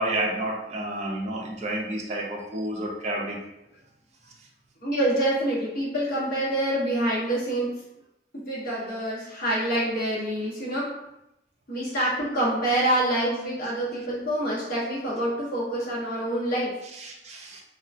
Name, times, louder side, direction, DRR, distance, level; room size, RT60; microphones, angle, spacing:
voice 1, 0.0-3.4 16.9-17.6, right 1 dB, 40° right, -1 dB, 0.5 m, -30 dB
voice 2, 4.8-7.8 8.5-10.9 11.7-16.7, right 1 dB, 55° left, -8 dB, 1.0 m, -26 dB
2.9 x 2.2 x 2.5 m, 0.88 s
head